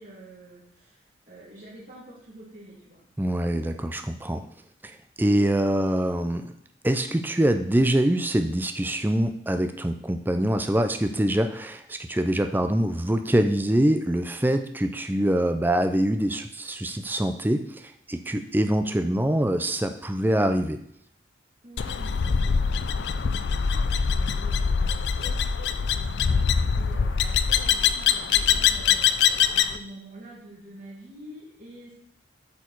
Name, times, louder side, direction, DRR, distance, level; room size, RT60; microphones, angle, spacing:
voice 1, 0.0-3.0 21.6-31.9, right 1 dB, 40° right, -8 dB, 2.9 m, -47 dB
voice 2, 3.2-4.4 5.2-6.5 6.8-20.8, right 1 dB, 10° right, 7 dB, 0.4 m, -24 dB
sound 1, 21.8-29.8, left 7 dB, 60° left, 0.4 m, -23 dB
8.4 x 4.7 x 4.6 m, 0.68 s
head